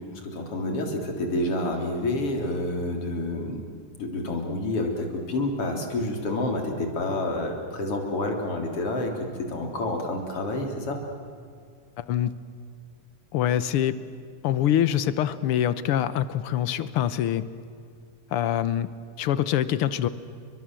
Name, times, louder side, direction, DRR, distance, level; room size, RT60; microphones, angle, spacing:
voice 1, 0.0-3.6 4.0-11.0, left 2 dB, 45° left, 2 dB, 4.4 m, -29 dB
voice 2, 12.0-12.3 13.3-14.0 14.4-17.5 18.3-18.9 19.2-20.1, left 11 dB, 70° left, 14 dB, 1.4 m, -24 dB
29.5 x 24.0 x 7.7 m, 2.3 s
omnidirectional pair, 3.5 m